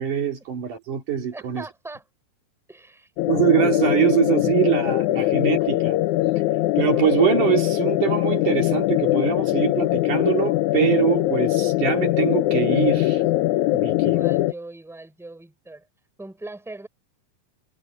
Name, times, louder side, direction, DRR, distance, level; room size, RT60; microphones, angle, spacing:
voice 1, 0.0-1.6 3.3-6.0 6.8-13.2 13.7-14.2, right 10 dB, 65° right, 3.8 m, -23 dB
voice 2, 1.3-2.0 2.7-3.1 14.0-15.9 16.2-16.9, right 2 dB, ahead, 4.1 m, -40 dB
sound 1, 3.2-14.5, left 16 dB, 85° left, 1.7 m, -22 dB
omnidirectional pair, 4.0 m